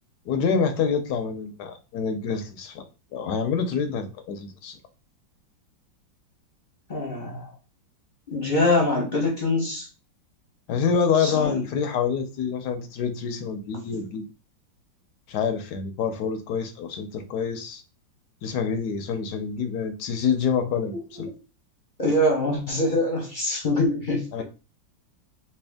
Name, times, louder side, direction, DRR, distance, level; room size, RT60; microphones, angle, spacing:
voice 1, 0.3-2.8 3.1-4.7 10.7-14.2 15.3-17.8 18.4-21.3 24.3-24.4, left 6 dB, 75° left, 7 dB, 1.0 m, -27 dB
voice 2, 6.9-7.5 8.3-9.9 11.2-11.6 20.9-21.3 22.0-24.4, left 1 dB, 40° left, -1 dB, 0.7 m, -24 dB
3.4 x 2.8 x 3.5 m, 0.32 s
omnidirectional pair, 2.1 m